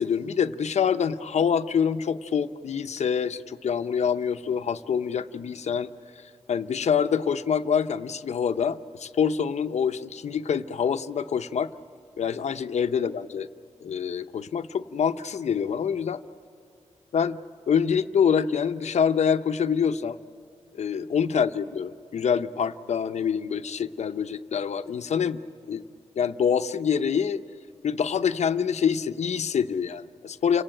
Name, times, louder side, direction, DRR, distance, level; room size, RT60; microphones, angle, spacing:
voice 1, 0.0-5.9 6.5-11.7 12.2-13.5 13.8-16.2 17.1-17.4 17.7-20.2 20.7-25.4 25.7-25.8 26.2-27.4 27.8-30.6, left 7 dB, 75° left, 10 dB, 0.7 m, -26 dB
29.5 x 18.0 x 9.0 m, 2.5 s
wide cardioid pair, 140°, 12 cm